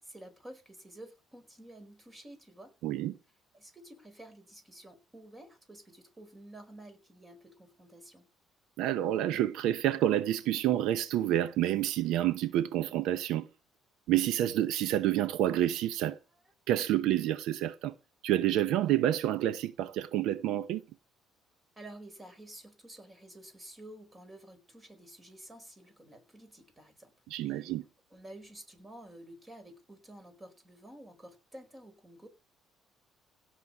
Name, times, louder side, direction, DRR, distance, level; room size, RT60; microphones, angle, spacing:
voice 1, 0.0-2.7 3.5-8.3 21.8-27.1 27.5-27.7 28.1-32.3, right 1 dB, 20° right, 4.6 m, -51 dB
voice 2, 2.8-3.2 8.8-13.5 14.1-16.2 16.7-17.9 18.2-20.8 27.3-27.8, right 12 dB, 80° right, 0.8 m, -28 dB
16.5 x 6.5 x 7.0 m
cardioid pair, 110°, 0 cm